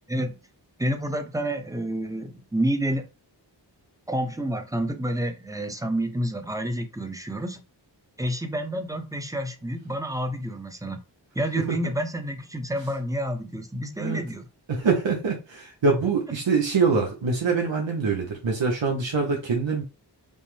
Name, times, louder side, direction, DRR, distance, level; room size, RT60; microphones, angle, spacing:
voice 1, 0.1-0.4 0.8-3.1 4.1-7.6 8.2-11.0 11.3-14.4, right 1 dB, 10° right, 0.6 m, -29 dB
voice 2, 14.7-19.8, right 4 dB, 90° right, 0.8 m, -24 dB
5.4 x 2.1 x 3.2 m
wide cardioid pair, 55°, 44 cm